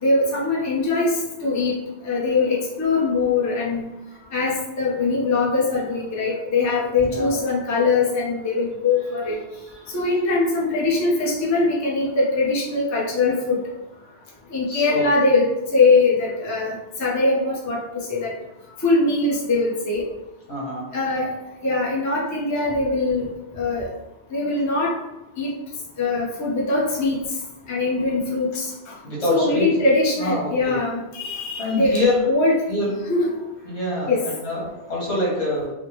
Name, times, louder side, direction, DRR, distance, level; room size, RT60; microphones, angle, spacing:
voice 1, 0.0-1.8 2.0-3.9 4.3-9.4 9.9-13.6 14.5-18.3 18.8-20.0 20.9-21.3 21.6-23.3 23.5-23.9 24.3-24.9 25.4-25.5 26.0-27.2 27.7-29.0 29.3-32.5 33.1-33.3 34.1-34.2, left 3 dB, 25° left, -4 dB, 0.4 m, -22 dB
voice 2, 7.0-7.4 9.8-9.9 14.0-14.2 14.7-15.0 20.5-20.9 29.0-29.7 30.2-30.8 31.6-32.2 32.7-33.1 33.6-35.7, left 2 dB, 85° left, -6 dB, 1.5 m, -25 dB
3.4 x 2.0 x 2.9 m, 1.0 s
omnidirectional pair, 1.1 m